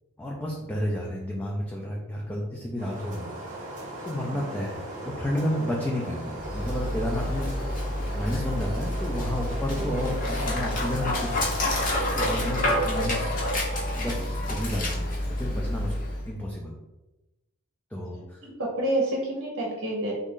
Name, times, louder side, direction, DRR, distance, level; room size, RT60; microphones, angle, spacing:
voice 1, 0.2-3.3 4.0-7.5 8.1-11.5 12.1-13.4 14.0-16.7 17.9-18.4, left 1 dB, 5° left, -3 dB, 0.4 m, -31 dB
sound 1, 2.8-12.8, right 1 dB, 35° right, 0.9 m, -38 dB
Dog, 6.4-16.3, left 1 dB, 40° left, 0.8 m, -28 dB
voice 2, 18.1-20.1, right 1 dB, 60° right, -3 dB, 0.7 m, -29 dB
3.1 x 2.4 x 3.7 m, 1.0 s
head